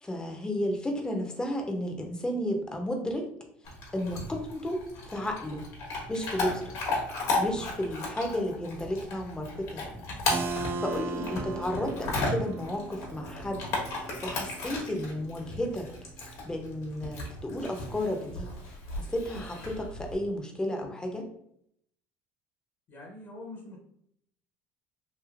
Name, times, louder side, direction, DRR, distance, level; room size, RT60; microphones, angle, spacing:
voice 1, 0.0-3.3 3.9-5.6 6.1-6.7 7.4-10.0 10.8-13.7 14.2-15.9 16.4-18.5 18.9-21.3, left 1 dB, 15° left, 3 dB, 0.7 m, -33 dB
Chewing mastication / Dog, 3.6-20.2, left 2 dB, 65° left, 1.2 m, -35 dB
Keyboard (musical), 10.3-15.8, right 3 dB, 40° right, 0.3 m, -38 dB
voice 2, 22.9-23.8, left 2 dB, 45° left, 0 dB, 0.9 m, -44 dB
3.1 x 2.7 x 2.4 m, 0.70 s
supercardioid pair, 95°, 6 cm